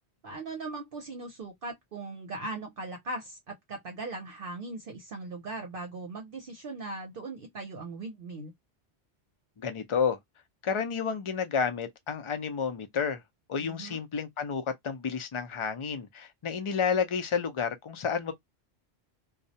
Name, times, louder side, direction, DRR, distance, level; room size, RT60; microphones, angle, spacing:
voice 1, 0.2-8.5 13.6-14.0, right 2 dB, 60° right, 0.8 m, -39 dB
voice 2, 9.6-10.2 10.6-13.2 13.5-18.3, left 6 dB, 40° left, 0.4 m, -30 dB
2.3 x 2.0 x 2.7 m
omnidirectional pair, 1.1 m